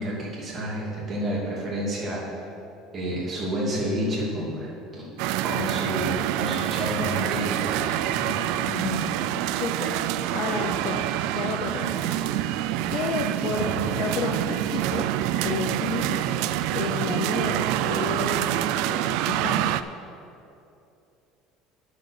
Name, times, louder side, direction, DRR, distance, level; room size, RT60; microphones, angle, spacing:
voice 1, 0.0-2.2 2.9-5.1 5.4-8.3 8.8-9.0 13.5-13.8, equal, 25° right, -5 dB, 2.6 m, -30 dB
sound 1, 5.2-19.8, right 13 dB, 65° right, 0.3 m, -26 dB
voice 2, 9.5-11.1 11.3-15.2 15.4-16.2 16.7-19.8, left 5 dB, 40° left, 2 dB, 0.6 m, -32 dB
9.4 x 6.6 x 6.5 m, 2.7 s
cardioid pair, 170°, 0 cm